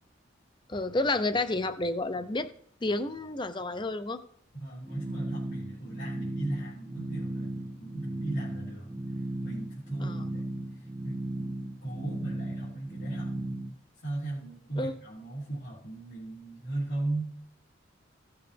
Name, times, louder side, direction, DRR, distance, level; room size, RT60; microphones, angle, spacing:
voice 1, 0.7-2.5 2.8-4.2 10.0-10.4 14.8-15.0, left 2 dB, 25° left, 11 dB, 0.5 m, -30 dB
voice 2, 4.5-9.0 9.4-10.6 11.0-13.6 14.0-17.4, right 2 dB, 90° left, -10 dB, 3.4 m, -37 dB
sound 1, 4.8-13.7, right 1 dB, 20° right, 0.5 m, -36 dB
16.0 x 7.0 x 3.4 m, 0.65 s
head